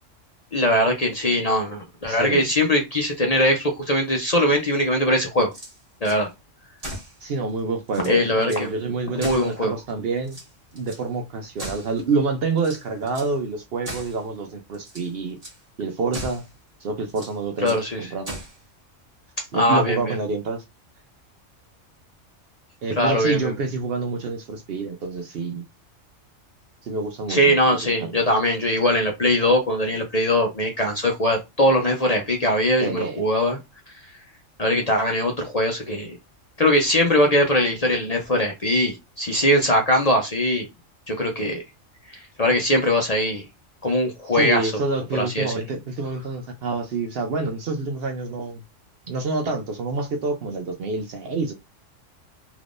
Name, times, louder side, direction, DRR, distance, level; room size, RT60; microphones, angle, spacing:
voice 1, 0.5-5.5 6.0-6.3 8.1-9.7 17.6-18.1 19.4-20.2 23.0-23.5 27.3-33.6 34.6-36.1 36.6-40.7 41.1-41.6 42.1-43.4 43.8-44.7 45.1-45.6, left 1 dB, 40° left, 0.6 m, -21 dB
voice 2, 2.1-2.5 7.2-10.4 10.7-15.4 15.8-16.4 16.8-18.4 19.5-20.6 22.8-25.6 26.8-27.9 32.8-33.2 44.3-48.6 49.1-51.5, right 3 dB, 60° right, 0.7 m, -27 dB
sound 1, 5.4-6.2 6.8-7.2 7.6-7.7 7.9-8.7 9.2-9.9 10.2-11.0 11.6-12.1 12.6-13.4 13.8-14.2 14.7-15.1 15.4-15.6 16.1-16.5 17.1-17.9 18.2-18.6, right 1 dB, 30° right, 1.5 m, -38 dB
3.5 x 2.9 x 2.5 m
omnidirectional pair, 1.3 m